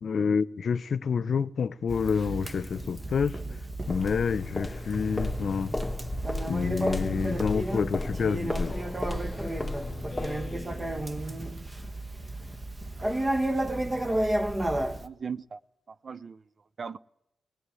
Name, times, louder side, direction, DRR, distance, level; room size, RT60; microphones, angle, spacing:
voice 1, 0.0-3.4 3.9-5.7 6.5-8.8, left 6 dB, 60° left, 0.9 m, -28 dB
Conversation, 1.9-15.1, right 1 dB, 20° right, 1.5 m, -32 dB
sound 1, 3.9-10.7, left 2 dB, 5° left, 2.6 m, -35 dB
Speech synthesizer, 8.4-11.5, left 4 dB, 40° left, 1.2 m, -45 dB
voice 2, 15.0-15.6 15.9-16.4 16.8-17.0, right 6 dB, 45° right, 0.8 m, -38 dB
18.5 x 18.0 x 9.9 m
cardioid pair, 85°, 0 cm